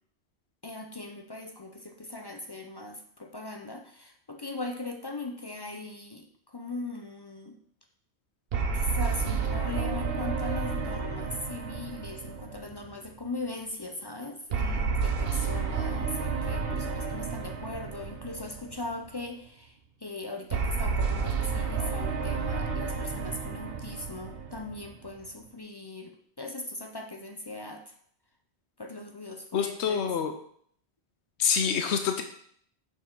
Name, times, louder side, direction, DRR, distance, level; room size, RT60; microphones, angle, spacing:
voice 1, 0.6-7.6 8.7-19.7 20.0-27.9 28.8-30.0, left 2 dB, 35° left, 4 dB, 0.4 m, -39 dB
sound 1, 8.5-13.1 14.5-18.9 20.5-25.1, right 5 dB, 65° right, 1.0 m, -31 dB
voice 2, 29.5-30.3 31.4-32.2, left 7 dB, 90° left, 6 dB, 0.9 m, -26 dB
6.6 x 5.0 x 3.7 m, 0.63 s
omnidirectional pair, 1.1 m